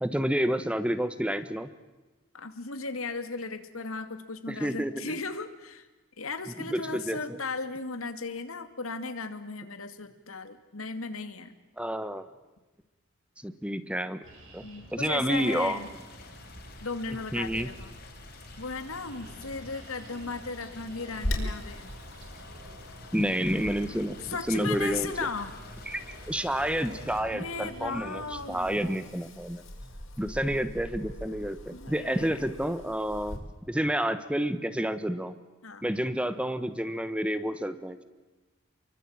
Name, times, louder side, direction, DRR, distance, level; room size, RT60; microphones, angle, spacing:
voice 1, 0.0-1.7 4.5-5.1 6.7-7.4 11.8-12.3 13.4-14.2 14.5-14.6 14.9-15.8 17.3-17.7 23.1-25.1 25.9-29.6 30.2-33.4 33.7-35.3 35.8-38.0, equal, 5° right, 12 dB, 1.2 m, -29 dB
voice 2, 2.3-5.9 6.2-11.5 14.6-15.9 16.8-17.9 18.6-21.9 24.2-25.6 27.3-28.7 31.7-32.3 35.6-35.8, left 4 dB, 90° left, 9 dB, 2.4 m, -36 dB
Jarry Park - Path, 14.2-29.0, equal, 70° right, 6.5 m, -48 dB
sound 1, 15.3-27.2, left 5 dB, 50° left, 4.1 m, -52 dB
Wind, 21.1-33.4, left 1 dB, 70° left, 5.5 m, -41 dB
29.0 x 23.5 x 8.8 m, 1.1 s
head